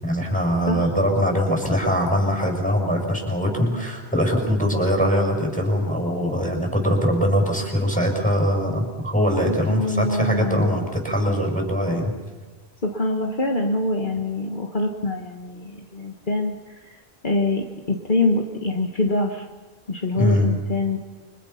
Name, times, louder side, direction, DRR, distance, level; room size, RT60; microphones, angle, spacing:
voice 1, 0.0-12.1 20.2-20.5, equal, 5° left, 2 dB, 6.9 m, -22 dB
voice 2, 9.5-10.7 12.8-17.0 17.2-19.5 19.9-21.0, left 2 dB, 50° left, 1 dB, 1.8 m, -25 dB
29.5 x 25.5 x 5.9 m, 1.3 s
omnidirectional pair, 1.1 m